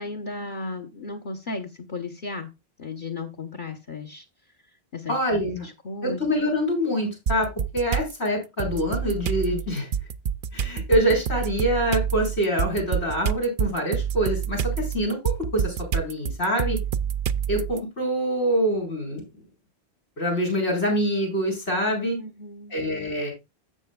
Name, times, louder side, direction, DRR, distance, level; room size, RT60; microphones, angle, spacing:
voice 1, 0.0-2.5 2.8-4.2 4.9-5.2 5.6-6.2 22.2-22.8, left 3 dB, 50° left, 6 dB, 1.4 m, -35 dB
voice 2, 5.1-5.7 6.0-7.5 7.7-9.9 10.5-16.8 17.5-19.2 20.2-22.2 22.7-23.3, equal, 90° left, -1 dB, 5.1 m, -25 dB
sound 1, 7.3-8.1 8.6-17.8, right 8 dB, 60° right, 0.7 m, -27 dB
12.5 x 7.9 x 2.3 m, 0.24 s
omnidirectional pair, 1.1 m